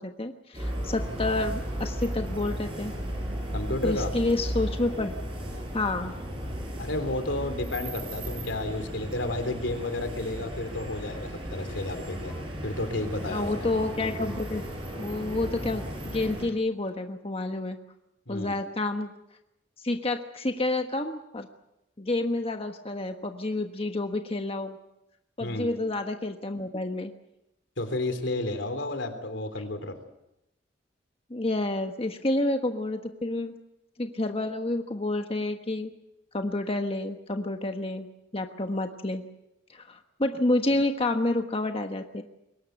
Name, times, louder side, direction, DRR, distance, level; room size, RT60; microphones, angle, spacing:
voice 1, 0.0-2.9 3.8-5.1 5.7-6.1 13.3-14.6 15.0-17.8 18.3-19.1 19.8-21.5 22.0-24.8 25.4-27.1 31.3-33.5 34.0-35.9 36.3-38.1 38.3-39.2 39.7-42.2, left 2 dB, 30° left, 5 dB, 1.3 m, -29 dB
sound 1, 0.5-16.4, equal, 30° right, 7.8 m, -35 dB
voice 2, 3.5-4.1 6.8-12.3 12.6-13.7 18.3-18.6 25.4-25.7 27.8-30.0, left 2 dB, 85° left, 8 dB, 3.5 m, -32 dB
23.0 x 19.5 x 7.8 m, 0.86 s
head